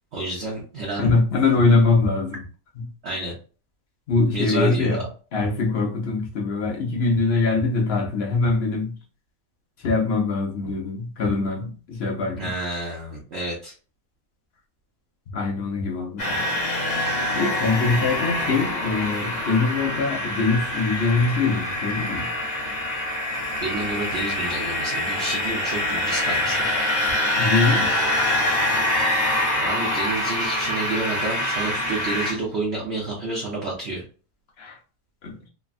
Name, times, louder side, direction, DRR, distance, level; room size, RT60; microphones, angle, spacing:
voice 1, 0.1-1.1 3.0-3.3 4.3-5.0 12.4-13.7 23.6-26.8 29.6-34.0, right 2 dB, 55° right, 0.8 m, -29 dB
voice 2, 1.0-2.4 2.8-2.9 4.1-5.0 5.3-8.9 9.8-12.5 15.3-16.5 17.3-22.3 27.4-28.0 34.6-34.8 35.2-35.4, left 3 dB, 60° left, 0.7 m, -23 dB
sound 1, 16.2-32.3, left 1 dB, 35° left, 0.9 m, -25 dB
3.3 x 2.2 x 2.4 m
omnidirectional pair, 1.7 m